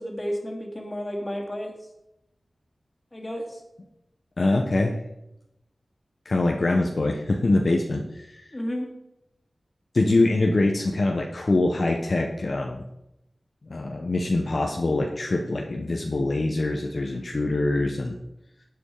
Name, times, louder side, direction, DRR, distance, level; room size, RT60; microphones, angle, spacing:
voice 1, 0.0-1.7 3.1-3.4 8.5-8.9, equal, 20° left, 1 dB, 3.0 m, -31 dB
voice 2, 4.4-5.0 6.2-8.4 9.9-12.8 13.7-18.2, left 2 dB, 55° left, 1 dB, 1.4 m, -24 dB
12.5 x 8.6 x 5.1 m, 0.86 s
wide cardioid pair, 85°, 0 cm